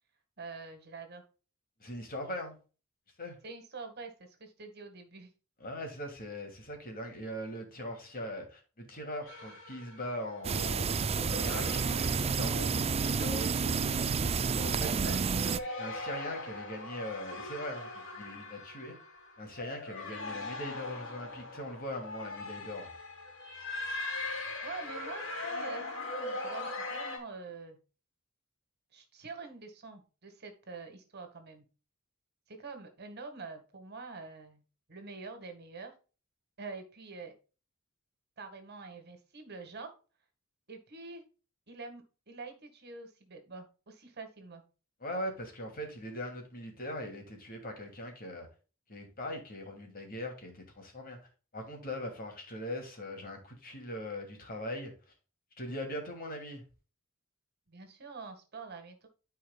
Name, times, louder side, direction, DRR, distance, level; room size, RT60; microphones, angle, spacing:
voice 1, 0.4-1.2 3.4-5.3 15.0-15.3 24.6-27.8 28.9-31.6 32.5-34.6 34.9-35.9 36.6-37.3 38.4-39.9 40.7-41.2 41.7-44.6 57.7-59.1, right 4 dB, 50° right, 1.8 m, -46 dB
voice 2, 1.8-2.6 3.2-3.4 5.6-10.9 11.3-12.7 13.1-13.8 14.5-15.3 15.8-19.0 19.4-22.9 45.0-48.5 48.9-51.2 51.5-54.9 55.6-56.6, left 1 dB, 45° left, 2.6 m, -40 dB
sound 1, 9.3-10.6 11.1-13.6 14.1-14.4 15.2-27.2, left 2 dB, 65° left, 2.8 m, -41 dB
sound 2, 10.4-15.6, right 5 dB, 30° right, 0.4 m, -30 dB
13.0 x 4.8 x 2.3 m
head